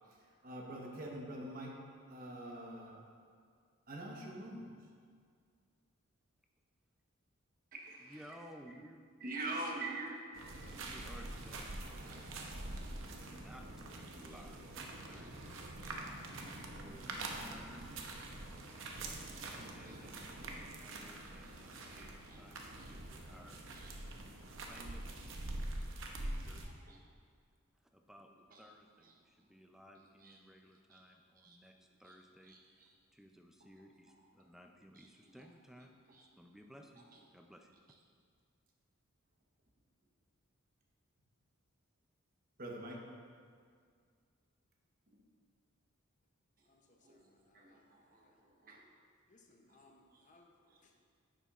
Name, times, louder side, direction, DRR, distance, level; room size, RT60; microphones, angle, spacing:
voice 1, 0.2-1.8 2.1-3.0 3.9-4.7 7.7-8.2 9.2-10.2 11.8-12.8 15.0-15.2 15.8-16.0 18.0-18.2 19.4-19.6 19.8-20.3 21.2-21.3 21.7-22.4 22.7-22.9 23.7-23.9 26.8-27.0 28.5-28.6 30.2-30.4 30.9-31.0 31.4-31.6 32.0-32.1 32.5-32.6 35.0-35.1 36.1-36.2 42.6-43.0 47.0-47.2 47.5-48.8 50.1-50.2 50.7-50.8, right 2 dB, 45° right, -1 dB, 1.1 m, -46 dB
voice 2, 8.0-9.0 10.6-12.3 13.2-13.9 14.2-15.7 16.4-17.9 19.0-23.6 24.4-25.3 25.9-26.6 27.8-28.3 28.6-36.0 36.4-37.8, equal, ahead, 3 dB, 0.4 m, -58 dB
sound 1, 10.3-26.6, right 2 dB, 65° right, 0.8 m, -45 dB
voice 3, 46.6-48.4 49.3-51.0, left 2 dB, 35° left, 2 dB, 0.7 m, -68 dB
10.0 x 7.1 x 2.4 m, 2.1 s
head